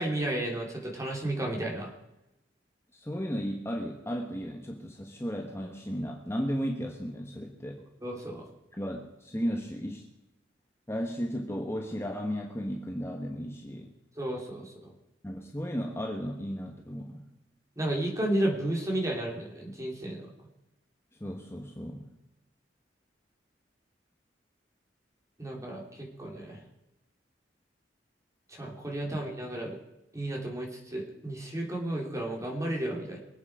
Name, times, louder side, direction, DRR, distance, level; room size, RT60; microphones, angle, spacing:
voice 1, 0.0-1.9 8.0-8.4 14.2-14.9 17.8-20.3 25.4-26.6 28.5-29.8 30.1-33.2, right 1 dB, 20° right, -1 dB, 3.4 m, -32 dB
voice 2, 2.9-7.8 8.8-10.1 10.9-13.9 15.2-17.3 21.2-22.1 29.1-29.2, equal, 15° left, 1 dB, 1.4 m, -34 dB
24.0 x 8.6 x 5.0 m, 0.93 s
head